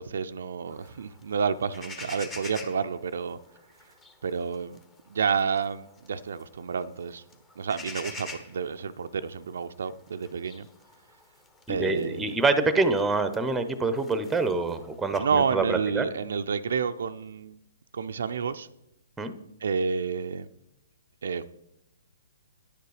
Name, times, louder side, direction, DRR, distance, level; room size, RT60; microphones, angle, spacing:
voice 1, 0.0-3.4 4.2-4.8 5.1-7.2 7.6-10.7 11.7-12.3 15.2-17.6 17.9-18.7 19.6-20.5 21.2-21.4, right 6 dB, 70° right, 10 dB, 0.4 m, -30 dB
sound 1, 0.7-15.2, left 3 dB, 15° left, 1.0 m, -47 dB
voice 2, 11.7-16.1 19.2-19.3, right 3 dB, 5° right, 11 dB, 0.8 m, -26 dB
9.9 x 6.7 x 4.8 m, 0.85 s
hypercardioid pair, 135°, 0 cm